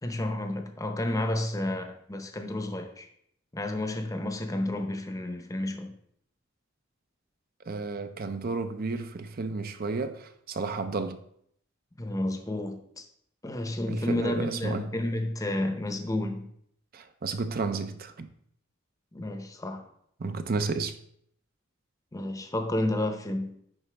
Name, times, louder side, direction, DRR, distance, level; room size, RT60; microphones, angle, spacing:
voice 1, 0.0-3.1 3.5-5.9 11.9-13.0 13.4-16.5 19.1-19.9 22.1-23.6, left 1 dB, 15° left, 0.7 m, -31 dB
voice 2, 7.7-11.2 13.9-14.9 16.9-18.3 20.2-21.0, right 4 dB, 50° right, 0.5 m, -32 dB
10.0 x 4.0 x 3.4 m
head